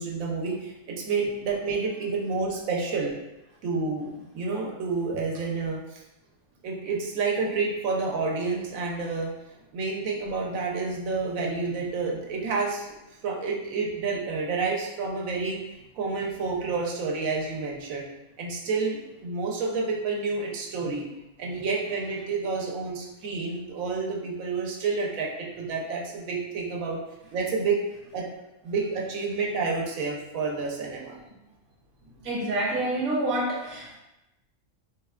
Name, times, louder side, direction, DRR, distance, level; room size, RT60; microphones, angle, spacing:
voice 1, 0.0-3.1 3.6-6.0 6.6-9.3 9.7-12.9 13.2-18.1 18.4-21.1 21.4-27.0 27.3-27.8 28.1-28.2 28.6-31.2, right 4 dB, 90° right, -1 dB, 1.0 m, -29 dB
voice 2, 32.2-34.0, right 1 dB, 50° right, -3 dB, 0.8 m, -27 dB
3.5 x 2.1 x 2.3 m, 0.95 s
omnidirectional pair, 1.4 m